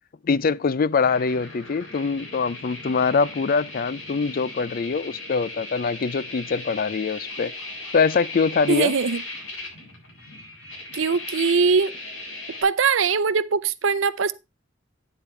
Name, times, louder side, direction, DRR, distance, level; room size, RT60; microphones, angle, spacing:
voice 1, 0.2-7.5 7.9-8.9, left 5 dB, 50° left, 0.4 m, -23 dB
sound 1, 1.0-12.6, left 2 dB, 85° left, 6.3 m, -38 dB
voice 2, 8.7-9.2 10.9-11.9 12.6-14.3, right 5 dB, 80° right, 0.7 m, -21 dB
9.4 x 8.3 x 3.2 m
head